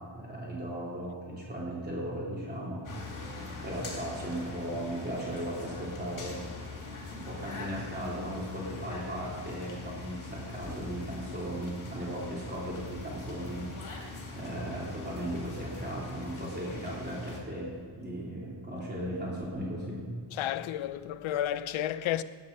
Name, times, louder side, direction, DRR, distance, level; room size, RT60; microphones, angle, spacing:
voice 1, 0.0-20.1, right 1 dB, 20° right, 3.3 m, -37 dB
sound 1, 2.8-17.4, left 3 dB, 40° left, 3.0 m, -42 dB
voice 2, 20.3-22.2, left 12 dB, 80° left, 0.7 m, -31 dB
19.0 x 8.0 x 5.4 m
wide cardioid pair, 160°, 47 cm